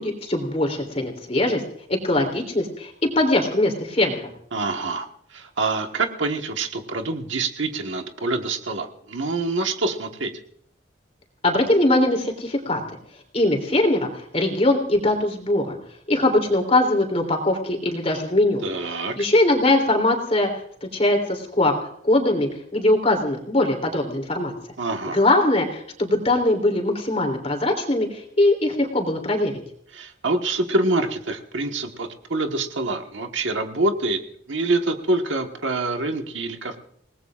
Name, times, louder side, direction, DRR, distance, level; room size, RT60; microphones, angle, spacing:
voice 1, 0.0-1.6 1.9-4.2 11.4-12.8 13.3-15.7 16.1-18.6 19.1-20.5 20.8-21.8 22.0-24.5 25.1-29.5, left 1 dB, 30° left, 3 dB, 3.2 m, -21 dB
voice 2, 4.5-10.3 18.6-19.1 24.8-25.2 29.9-34.2 34.5-36.8, right 2 dB, 70° right, 4 dB, 1.5 m, -26 dB
28.5 x 19.0 x 2.5 m, 0.65 s
head